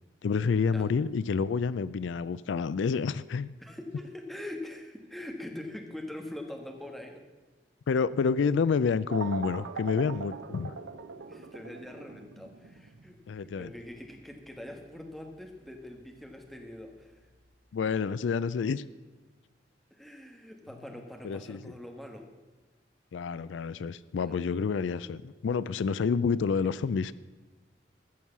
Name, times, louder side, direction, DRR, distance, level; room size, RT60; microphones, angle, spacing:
voice 1, 0.2-3.5 7.9-10.7 13.3-13.7 17.7-18.8 21.2-21.7 23.1-27.1, left 5 dB, 85° left, 17 dB, 0.4 m, -28 dB
voice 2, 3.6-7.2 11.3-17.2 19.9-22.3 24.1-24.4 26.2-26.3, left 1 dB, ahead, 2 dB, 1.4 m, -43 dB
sound 1, 9.1-17.5, right 4 dB, 90° right, 0.8 m, -43 dB
14.5 x 6.3 x 7.2 m, 1.2 s
head